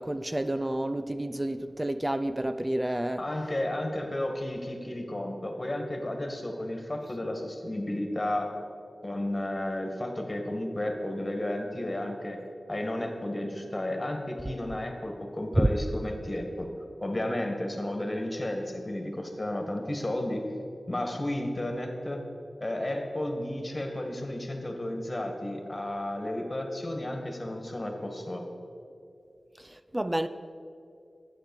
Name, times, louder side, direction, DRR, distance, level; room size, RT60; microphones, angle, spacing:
voice 1, 0.0-3.3 15.6-15.7 29.6-30.3, right 1 dB, 20° right, 0.5 m, -29 dB
voice 2, 3.2-8.6 9.0-12.4 12.7-16.7 17.0-20.5 20.9-22.2 22.6-28.4, left 1 dB, 30° left, 2.1 m, -32 dB
11.0 x 8.9 x 7.3 m
cardioid pair, 50°, 0 cm